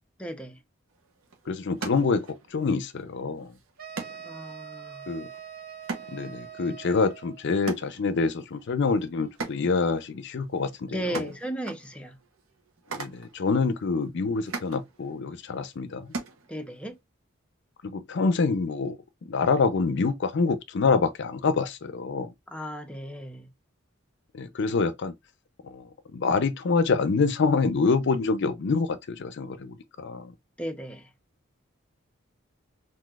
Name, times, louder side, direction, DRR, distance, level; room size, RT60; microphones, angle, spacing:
voice 1, 0.2-0.6 4.2-5.1 10.9-12.2 16.5-17.0 22.5-23.5 30.6-31.1, right 1 dB, 5° left, 0.5 m, -36 dB
sound 1, 0.9-17.0, right 4 dB, 80° right, 0.9 m, -42 dB
voice 2, 1.5-3.5 5.1-5.3 6.1-11.2 12.9-16.1 17.8-19.0 19.3-22.3 24.3-25.1 25.6-25.9 26.1-30.3, left 4 dB, 60° left, 0.4 m, -26 dB
sound 2, 3.8-7.5, right 8 dB, 45° right, 0.7 m, -43 dB
3.9 x 2.6 x 2.3 m
head